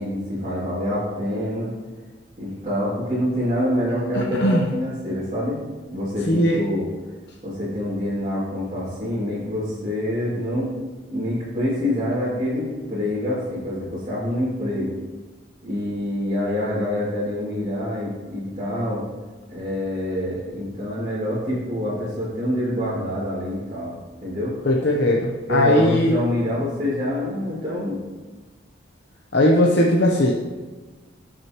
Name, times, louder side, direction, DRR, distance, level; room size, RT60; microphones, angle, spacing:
voice 1, 0.0-1.7 2.4-5.6 5.9-6.8 7.4-10.7 11.1-15.0 15.6-19.0 19.5-23.9 24.2-24.5 25.5-28.0, left 1 dB, 35° right, -10 dB, 2.6 m, -26 dB
voice 2, 4.1-4.6 6.3-6.6 24.6-26.1 29.3-30.3, left 1 dB, 60° left, -2 dB, 0.8 m, -19 dB
17.0 x 6.4 x 3.0 m, 1.3 s
head